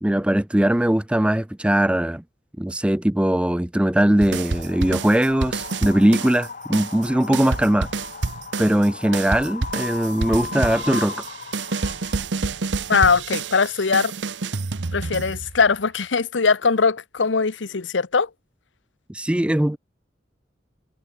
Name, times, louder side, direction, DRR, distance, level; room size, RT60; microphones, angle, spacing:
voice 1, 0.0-2.2 2.6-7.9 8.6-11.3 19.1-19.8, right 1 dB, 5° right, 0.4 m, -20 dB
Wind, 4.1-12.2, left 5 dB, 45° left, 3.2 m, -37 dB
sound 1, 4.2-6.5 6.7-15.7, right 4 dB, 70° right, 0.9 m, -28 dB
voice 2, 12.9-14.1 14.9-18.3, left 5 dB, 80° left, 0.9 m, -20 dB
head